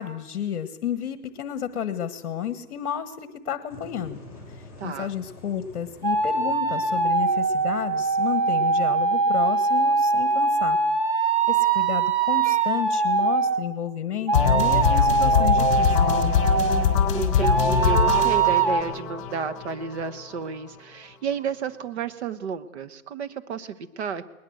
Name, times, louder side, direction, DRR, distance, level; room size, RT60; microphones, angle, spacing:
voice 1, 0.0-4.2 4.5-10.8 11.1-16.1, left 9 dB, 50° left, 11 dB, 1.5 m, -31 dB
sound 1, 3.7-9.6, left 1 dB, 5° right, 5.8 m, -48 dB
voice 2, 4.8-5.1 16.5-24.2, right 6 dB, 45° right, 11 dB, 1.4 m, -32 dB
sound 2, 6.0-13.7 14.3-17.0 17.4-18.8, right 4 dB, 25° right, 0.8 m, -22 dB
sound 3, 14.3-20.3, left 7 dB, 35° left, 3.9 m, -23 dB
21.0 x 20.0 x 7.9 m, 0.98 s
hypercardioid pair, 165°, 44 cm